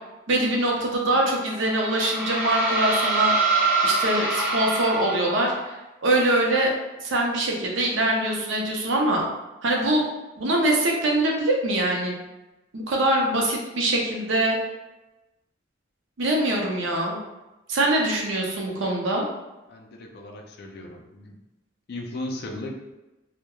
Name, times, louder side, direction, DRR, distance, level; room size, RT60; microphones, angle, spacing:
voice 1, 0.3-3.3 3.8-5.5 6.0-6.7 7.0-9.2 9.6-10.0 10.4-12.2 12.7-14.6 16.2-17.2 17.7-19.2, right 1 dB, 70° right, -1 dB, 0.5 m, -23 dB
sound 1, 1.3-5.7, right 3 dB, 5° right, 0.5 m, -25 dB
voice 2, 19.7-21.4 21.9-22.9, left 1 dB, 55° left, 1 dB, 0.4 m, -36 dB
2.9 x 2.1 x 2.2 m, 1.0 s
head